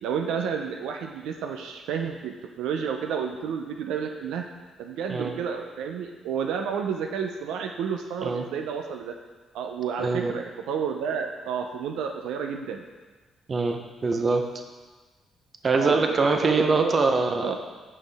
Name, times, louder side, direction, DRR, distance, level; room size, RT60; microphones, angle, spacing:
voice 1, 0.0-4.5 4.8-9.1 9.5-12.8 15.8-17.0 17.4-17.6, right 7 dB, 90° right, 3 dB, 0.5 m, -31 dB
voice 2, 10.0-10.3 13.5-14.5 15.6-17.6, right 3 dB, 40° right, 5 dB, 0.7 m, -23 dB
6.3 x 5.4 x 3.4 m, 1.3 s
cardioid pair, 90°, 0 cm